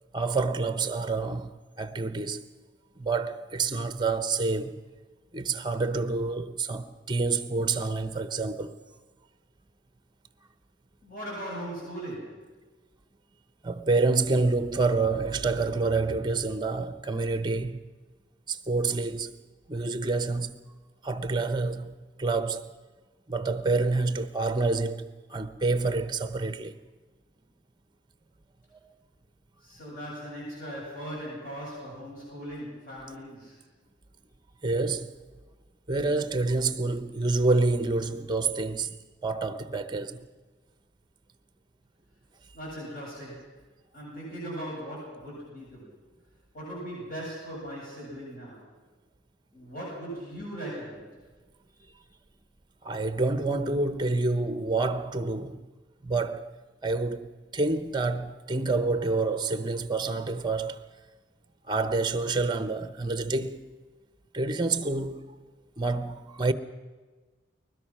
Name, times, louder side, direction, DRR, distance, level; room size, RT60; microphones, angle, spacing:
voice 1, 0.1-2.4 3.0-4.8 5.3-8.8 13.6-17.8 18.5-19.4 19.7-20.6 21.0-22.7 23.3-26.8 34.6-35.1 35.9-39.0 39.2-40.3 52.8-55.6 56.0-56.5 56.8-60.8 61.7-63.7 64.3-65.3 65.8-66.5, right 3 dB, 20° right, 0.8 m, -28 dB
voice 2, 11.0-12.4 29.6-33.6 42.5-43.6 43.9-46.0 46.5-48.7 49.5-51.1, equal, 40° left, 8.0 m, -39 dB
21.5 x 20.5 x 6.1 m
head